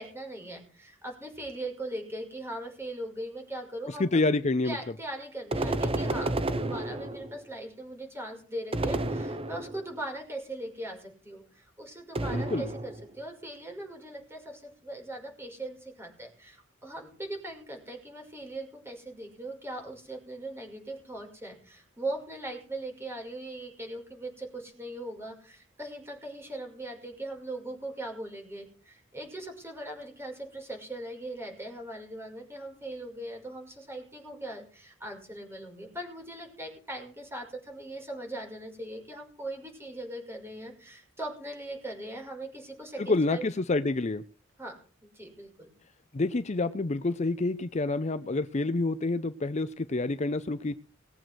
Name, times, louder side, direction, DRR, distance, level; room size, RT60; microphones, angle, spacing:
voice 1, 0.0-4.2 4.6-43.5 44.6-44.8 45.0-45.7, right 1 dB, 15° right, 1 dB, 5.9 m, -40 dB
voice 2, 3.9-4.8 12.3-12.7 43.0-44.2 46.1-50.7, left 2 dB, 35° left, 13 dB, 0.6 m, -28 dB
sound 1, 5.5-7.5 8.7-9.9 12.1-13.1, right 2 dB, 30° right, 0.9 m, -31 dB
20.5 x 7.8 x 6.2 m, 0.42 s
head